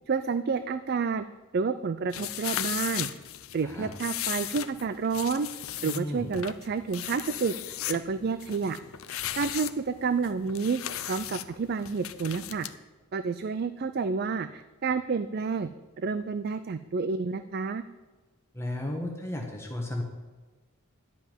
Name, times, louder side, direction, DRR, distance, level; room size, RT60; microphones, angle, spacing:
voice 1, 0.1-1.2 1.5-3.1 3.5-5.5 5.8-7.5 7.9-8.8 9.4-10.8 11.1-12.7 13.1-15.7 16.0-17.8, right 5 dB, 45° right, 12 dB, 0.4 m, -29 dB
sound 1, 2.1-12.7, left 12 dB, 75° left, 0.6 m, -36 dB
voice 2, 5.8-6.3 18.5-20.0, left 1 dB, 10° left, 0 dB, 1.3 m, -34 dB
11.5 x 5.7 x 8.9 m, 1.3 s
head